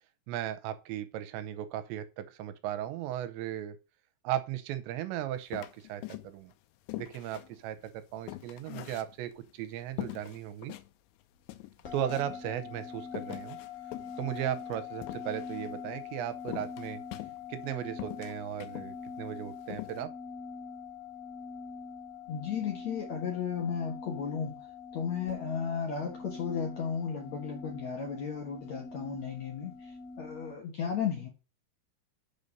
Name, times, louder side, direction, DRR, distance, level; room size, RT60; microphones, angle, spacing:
voice 1, 0.3-3.8 4.2-6.5 7.0-7.8 8.1-10.7 11.9-13.6 14.2-17.0 17.5-20.1, right 11 dB, 90° right, 3.0 m, -36 dB
sound 1, 5.5-6.5 6.9-9.5 10.0-10.9 11.2-11.3 11.5-12.4 13.1-15.7 16.5-17.7 18.0-18.9 19.3-19.4 19.7-20.0, left 17 dB, 85° left, 3.0 m, -43 dB
sound 2, 11.8-30.6, left 5 dB, 45° left, 2.3 m, -44 dB
voice 2, 22.3-24.6 24.9-31.3, left 7 dB, 60° left, 1.9 m, -34 dB
6.9 x 5.4 x 6.6 m
omnidirectional pair, 5.2 m